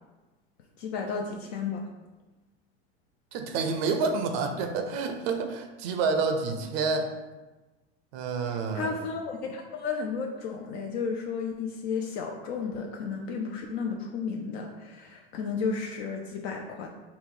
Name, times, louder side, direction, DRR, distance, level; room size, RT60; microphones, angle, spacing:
voice 1, 0.8-1.8 8.4-16.9, left 5 dB, 70° left, 1 dB, 0.5 m, -33 dB
voice 2, 3.3-7.1 8.1-9.0, right 4 dB, 65° right, 6 dB, 0.5 m, -28 dB
3.9 x 2.1 x 3.6 m, 1.2 s
hypercardioid pair, 90°, 32 cm